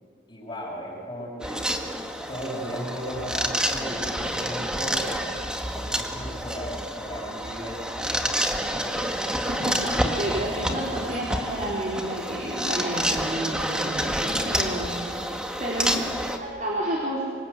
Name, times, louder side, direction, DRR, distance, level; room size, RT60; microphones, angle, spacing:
voice 1, 0.3-1.8 2.3-9.3, equal, 25° left, -6 dB, 6.6 m, -36 dB
sound 1, 1.4-16.4, equal, 5° right, 1.8 m, -28 dB
voice 2, 9.5-15.3 15.6-17.2, right 1 dB, 45° right, -4 dB, 4.1 m, -31 dB
27.0 x 25.0 x 8.4 m, 2.4 s
head